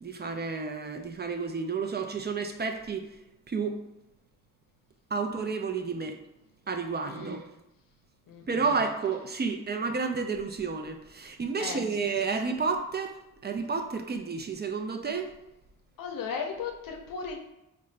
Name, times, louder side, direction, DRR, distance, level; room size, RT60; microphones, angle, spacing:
voice 1, 0.0-3.8 5.1-6.2 6.7-7.5 8.4-15.3, right 4 dB, 30° right, 5 dB, 0.4 m, -31 dB
voice 2, 11.6-12.0 16.0-17.4, left 5 dB, 90° left, 3 dB, 0.6 m, -36 dB
3.7 x 2.2 x 3.2 m, 0.91 s
cardioid pair, 65°, 33 cm